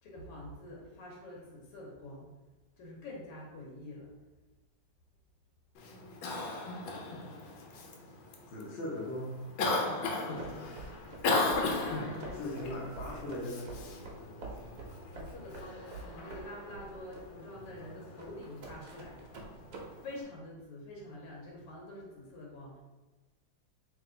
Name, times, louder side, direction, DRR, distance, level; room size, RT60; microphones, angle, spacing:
voice 1, 0.0-2.3 2.8-4.1 11.7-12.4 15.1-19.4 20.0-22.8, left 1 dB, 90° left, -2 dB, 1.7 m, -47 dB
Cough, 5.7-20.2, left 3 dB, 75° left, 1.3 m, -37 dB
voice 2, 8.5-9.4 12.4-13.8, left 1 dB, 55° left, -4 dB, 0.7 m, -38 dB
sound 1, 10.4-19.8, right 3 dB, 70° right, 0.8 m, -47 dB
3.2 x 3.0 x 3.7 m, 1.2 s
omnidirectional pair, 2.4 m